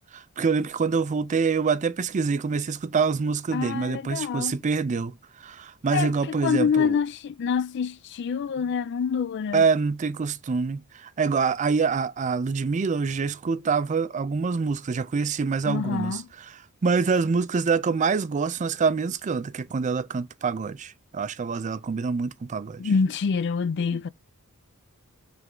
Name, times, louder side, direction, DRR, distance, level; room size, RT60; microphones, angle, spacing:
voice 1, 0.1-7.0 9.5-16.2 16.5-22.8, right 5 dB, 35° right, 0.4 m, -26 dB
voice 2, 3.5-4.6 5.9-9.6 15.7-16.3 22.8-24.1, left 6 dB, 50° left, 0.3 m, -26 dB
7.9 x 3.4 x 3.7 m
head